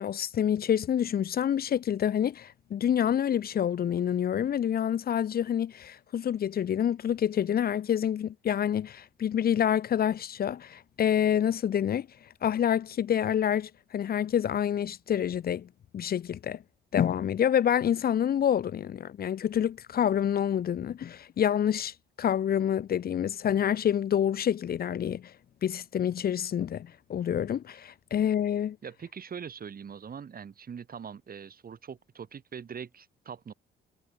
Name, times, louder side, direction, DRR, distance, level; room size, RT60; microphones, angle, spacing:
voice 1, 0.0-12.1 12.4-15.7 15.9-16.6 16.9-25.2 25.6-28.8, left 9 dB, 50° left, 0.7 m, -27 dB
voice 2, 28.8-33.5, right 7 dB, 45° right, 5.8 m, -42 dB
cardioid pair, 90°, 20 cm